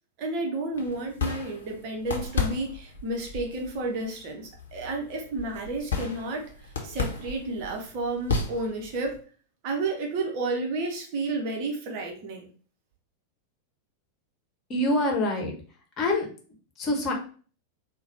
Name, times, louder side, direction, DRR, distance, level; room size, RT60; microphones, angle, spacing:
voice 1, 0.2-9.2 9.6-12.5, right 2 dB, 45° right, 1 dB, 0.9 m, -31 dB
sound 1, 0.7-9.2, left 4 dB, 65° left, 0.8 m, -34 dB
voice 2, 14.7-15.5 16.0-16.3 16.8-17.1, left 1 dB, 30° left, 1 dB, 1.0 m, -25 dB
4.0 x 2.2 x 4.1 m, 0.41 s
figure-of-eight pair, 90°, 0 cm